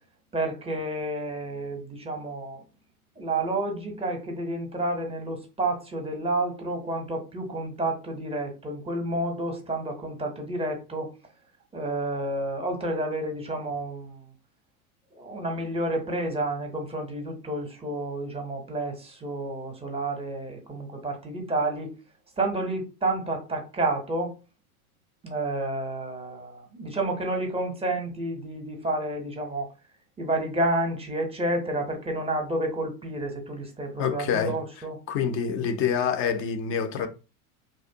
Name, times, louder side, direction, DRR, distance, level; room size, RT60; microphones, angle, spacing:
voice 1, 0.3-2.6 3.2-11.1 11.7-14.3 15.1-21.9 22.4-24.3 25.2-29.7 30.2-35.0, right 2 dB, 15° right, 0.6 m, -30 dB
voice 2, 34.0-34.6 35.1-37.1, left 7 dB, 30° left, 0.4 m, -26 dB
2.6 x 2.0 x 2.6 m
hypercardioid pair, 95°, 44 cm